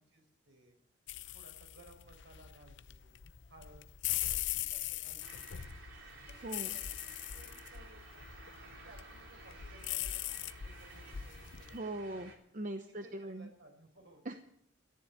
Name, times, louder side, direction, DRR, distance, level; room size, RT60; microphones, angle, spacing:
voice 1, 0.1-0.8 1.3-3.2 3.5-5.5 6.3-8.3 8.6-12.3 12.9-14.2, right 1 dB, 65° right, 3 dB, 4.9 m, -60 dB
sound 1, 1.1-11.8, left 13 dB, 70° left, 0.6 m, -41 dB
sound 2, 5.2-12.3, right 3 dB, 85° right, 3.7 m, -54 dB
voice 2, 11.7-13.5 14.2-14.4, right 1 dB, 40° right, 7 dB, 0.8 m, -41 dB
14.0 x 10.0 x 9.3 m, 0.70 s
head